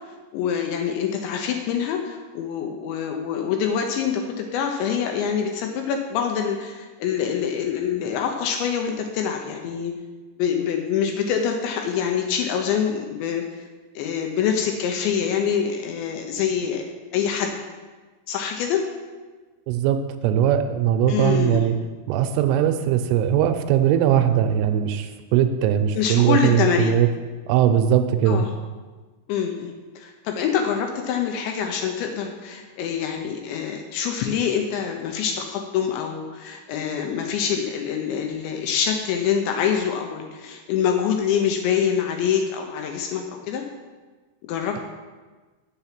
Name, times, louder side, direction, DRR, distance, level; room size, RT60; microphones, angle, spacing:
voice 1, 0.3-9.9 10.4-13.6 14.0-16.8 17.1-17.5 18.3-18.9 21.1-21.6 26.0-27.0 28.3-28.5 29.3-43.6 44.4-44.8, left 7 dB, 80° left, 3 dB, 2.8 m, -25 dB
voice 2, 19.7-21.7 22.1-27.1 27.5-28.5, right 10 dB, 85° right, 8 dB, 3.1 m, -20 dB
8.5 x 7.0 x 5.9 m, 1.3 s
omnidirectional pair, 5.7 m